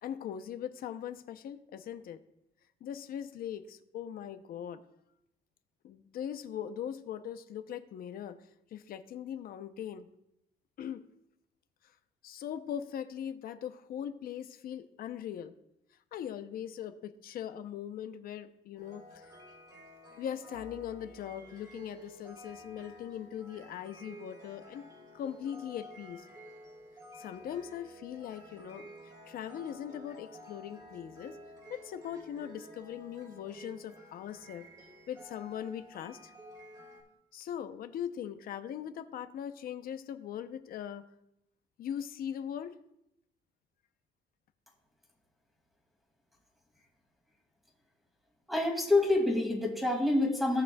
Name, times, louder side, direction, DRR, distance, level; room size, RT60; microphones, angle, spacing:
voice 1, 0.0-2.2 2.8-4.8 5.8-8.4 8.7-10.1 10.8-11.0 12.2-15.6 16.1-19.3 20.2-24.9 25.1-26.3 27.2-28.9 29.3-31.4 31.7-34.7 35.1-36.3 37.3-41.1 41.8-42.8, left 9 dB, 60° left, 10 dB, 0.7 m, -40 dB
sound 1, 18.7-37.0, equal, 20° right, 3.4 m, -52 dB
voice 2, 48.5-50.6, left 2 dB, ahead, 1 dB, 2.3 m, -27 dB
16.5 x 6.0 x 2.3 m, 0.81 s
cardioid pair, 110°, 17 cm